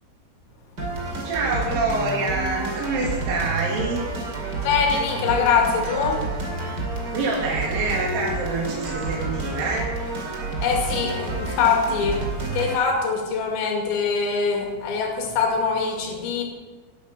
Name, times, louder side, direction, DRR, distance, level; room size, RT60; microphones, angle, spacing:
sound 1, 0.8-12.8, right 2 dB, 30° right, 2.2 m, -29 dB
voice 1, 1.2-4.1 7.1-9.9, right 3 dB, 60° right, -3 dB, 3.3 m, -26 dB
voice 2, 4.6-6.2 10.6-12.3 12.5-16.4, left 5 dB, 85° left, 1 dB, 4.7 m, -23 dB
12.5 x 11.0 x 6.7 m, 1.4 s
omnidirectional pair, 5.2 m